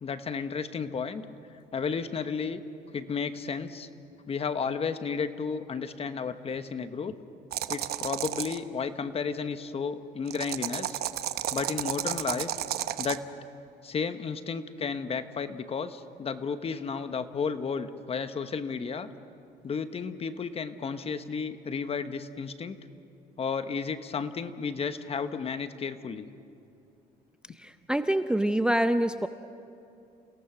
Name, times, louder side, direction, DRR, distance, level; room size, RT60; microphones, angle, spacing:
voice 1, 0.0-1.3 1.7-2.6 2.9-3.9 4.3-7.1 7.7-11.0 11.5-12.5 13.0-13.3 13.8-19.1 19.6-22.8 23.4-26.3, left 5 dB, 35° left, 10 dB, 1.1 m, -33 dB
sound 1, 7.5-8.6 10.3-13.2, right 12 dB, 70° right, 0.9 m, -32 dB
voice 2, 27.5-29.3, right 1 dB, 5° right, 10 dB, 0.6 m, -26 dB
29.5 x 17.5 x 6.1 m, 2.7 s
cardioid pair, 110°, 17 cm